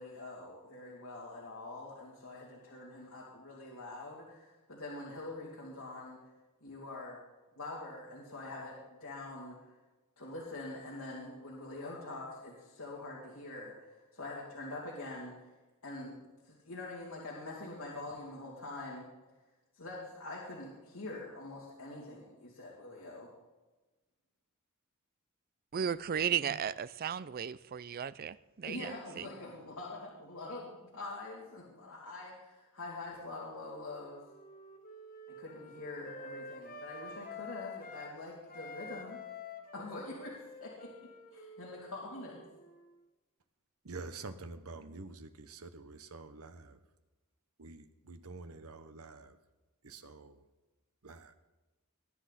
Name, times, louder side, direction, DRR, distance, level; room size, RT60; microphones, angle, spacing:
voice 1, 0.0-6.2 6.6-7.2 7.5-9.6 10.2-15.3 15.8-19.1 19.7-23.3 28.6-34.3 35.4-39.2 39.7-42.4, left 2 dB, 70° left, 2.8 m, -45 dB
voice 2, 25.7-29.2, right 8 dB, 45° right, 0.4 m, -35 dB
Wind instrument woodwind instrument, 33.6-38.1 38.5-43.0, left 3 dB, 40° left, 1.4 m, -49 dB
voice 3, 43.8-46.8 47.6-49.4 49.8-50.4 51.0-51.3, right 3 dB, 75° right, 1.0 m, -47 dB
20.0 x 10.0 x 4.2 m
head